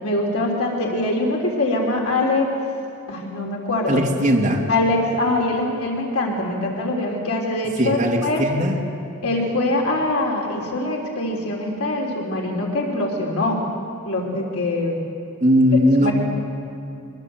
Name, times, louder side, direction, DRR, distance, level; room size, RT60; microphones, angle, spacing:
voice 1, 0.0-2.5 3.1-4.0 4.7-8.4 9.2-13.6 14.1-15.0 16.0-16.1, left 2 dB, 80° left, -1 dB, 3.5 m, -23 dB
voice 2, 3.9-4.6 7.8-8.8 15.4-16.1, equal, 35° right, -2 dB, 2.9 m, -18 dB
23.5 x 21.5 x 7.7 m, 2.8 s
head